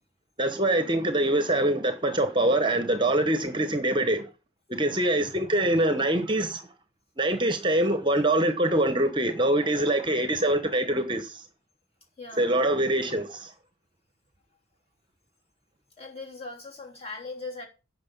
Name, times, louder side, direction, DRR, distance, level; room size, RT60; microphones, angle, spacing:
voice 1, 0.4-4.3 4.7-6.7 7.2-11.4 12.4-13.5, right 1 dB, 25° right, 1.0 m, -24 dB
voice 2, 12.2-12.5 16.0-17.7, left 3 dB, 30° left, 3.5 m, -39 dB
9.6 x 6.0 x 7.1 m
head